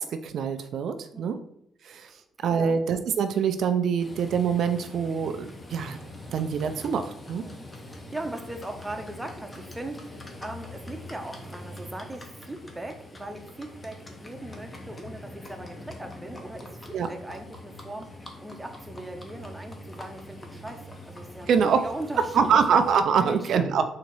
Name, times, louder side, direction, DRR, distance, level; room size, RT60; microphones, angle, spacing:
voice 1, 0.0-1.4 1.8-2.1 2.4-6.0 6.3-7.4 16.9-17.1 21.5-21.8 22.2-23.9, right 6 dB, 65° right, 8 dB, 0.4 m, -24 dB
voice 2, 1.1-1.4 2.0-2.8 7.4-22.6 23.2-23.7, right 1 dB, 10° right, 5 dB, 0.7 m, -39 dB
Livestock farm animals working animals, 4.0-23.0, left 1 dB, 25° left, 0.9 m, -44 dB
4.0 x 2.8 x 4.6 m, 0.76 s
cardioid pair, 90°, 0 cm